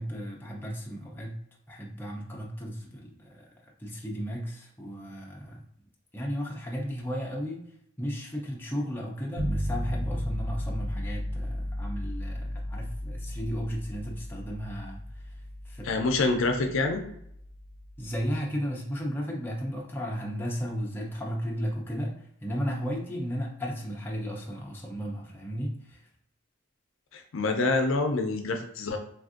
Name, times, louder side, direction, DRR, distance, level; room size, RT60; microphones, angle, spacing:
voice 1, 0.0-1.4 1.7-3.5 3.8-5.6 6.1-7.6 8.0-15.0 15.7-16.0 18.0-22.1 22.4-26.0, equal, 10° left, -2 dB, 0.4 m, -34 dB
sound 1, 9.4-18.3, equal, 45° right, 0.7 m, -35 dB
voice 2, 15.8-17.0 27.1-29.0, left 3 dB, 70° left, 5 dB, 0.5 m, -26 dB
3.4 x 2.5 x 2.4 m, 0.72 s
head